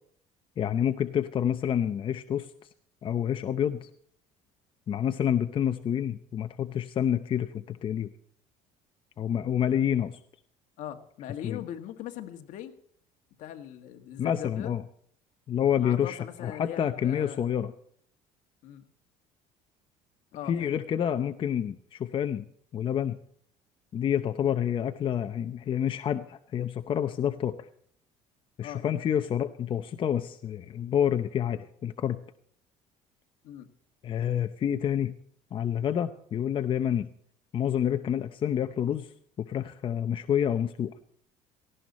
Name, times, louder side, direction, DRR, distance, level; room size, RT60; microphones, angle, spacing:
voice 1, 0.6-2.5 3.0-3.9 4.9-8.1 9.2-10.2 11.4-11.6 14.2-14.8 15.5-17.7 20.5-22.5 22.7-23.2 23.9-27.7 28.6-32.2 34.0-35.1 35.5-37.1 37.5-39.1 39.4-40.9, left 9 dB, 40° left, 8 dB, 0.8 m, -28 dB
voice 2, 10.8-12.7 13.4-14.7 15.8-17.5 18.6-18.9 20.3-20.8 28.6-28.9 33.4-33.7, left 11 dB, 65° left, 6 dB, 1.9 m, -40 dB
18.0 x 15.5 x 4.3 m, 0.63 s
cardioid pair, 135°, 14 cm